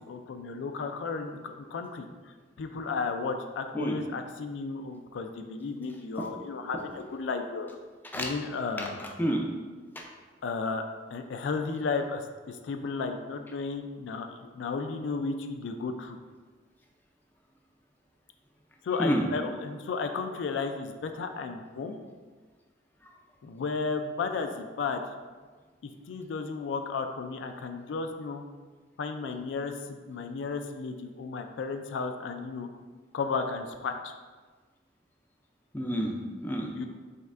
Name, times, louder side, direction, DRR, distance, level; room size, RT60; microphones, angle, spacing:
voice 1, 0.1-2.0 2.6-7.8 8.1-9.0 10.4-10.8 11.1-16.2 18.8-22.0 23.4-25.1 25.8-28.4 29.0-32.7 33.1-34.1 36.8-36.9, left 4 dB, 75° left, 6 dB, 0.3 m, -33 dB
voice 2, 8.8-9.5 10.0-10.1 19.0-19.3 23.0-23.1 35.7-36.7, equal, 10° left, 1 dB, 0.4 m, -30 dB
5.2 x 3.4 x 2.4 m, 1.4 s
head